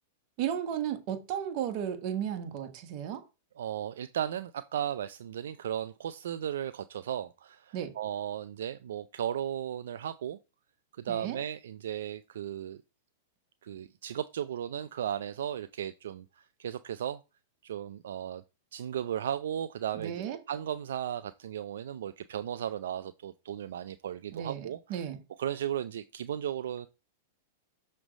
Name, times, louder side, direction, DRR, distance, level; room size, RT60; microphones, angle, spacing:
voice 1, 0.4-3.2 7.7-7.9 11.1-11.4 19.9-20.4 24.3-25.2, right 9 dB, 50° right, 1.2 m, -34 dB
voice 2, 3.6-10.4 11.0-12.8 13.6-17.2 17.6-18.4 18.7-25.0 25.4-26.9, right 10 dB, 75° right, 0.3 m, -35 dB
6.1 x 3.2 x 5.0 m
hypercardioid pair, 120°, 0 cm